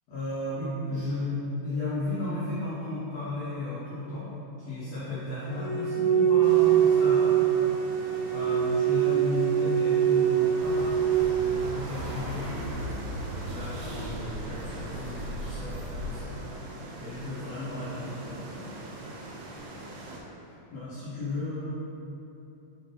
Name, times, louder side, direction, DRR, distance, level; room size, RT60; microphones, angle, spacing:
voice 1, 0.1-1.3 1.6-4.3 4.6-7.3 8.3-10.9 11.4-16.4 17.0-18.4 20.7-21.6, left 2 dB, 90° left, -12 dB, 1.4 m, -34 dB
sound 1, 5.5-11.2, right 9 dB, 70° left, 1.7 m, -23 dB
sound 2, 6.4-20.2, right 2 dB, 85° right, 2.9 m, -42 dB
sound 3, 10.6-16.2, equal, 70° right, 2.3 m, -37 dB
6.9 x 3.9 x 4.0 m, 2.9 s
omnidirectional pair, 5.0 m